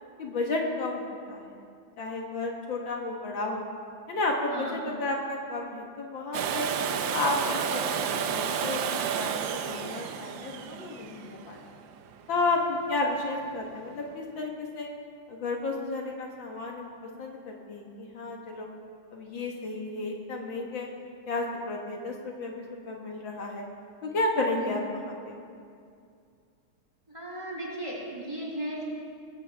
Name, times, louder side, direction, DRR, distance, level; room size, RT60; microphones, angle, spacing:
voice 1, 0.2-1.6 2.0-3.7 4.1-6.7 7.1-11.7 12.3-14.9 15.3-16.9 17.2-18.7 19.1-20.9 21.3-23.6 24.0-25.4, left 2 dB, 65° left, 0 dB, 2.0 m, -32 dB
Domestic sounds home sounds, 6.3-12.1 14.1-14.2, right 7 dB, 70° right, 1.4 m, -31 dB
voice 2, 27.1-28.8, right 1 dB, 15° right, -4 dB, 3.0 m, -36 dB
20.5 x 16.0 x 3.4 m, 2.3 s
omnidirectional pair, 2.3 m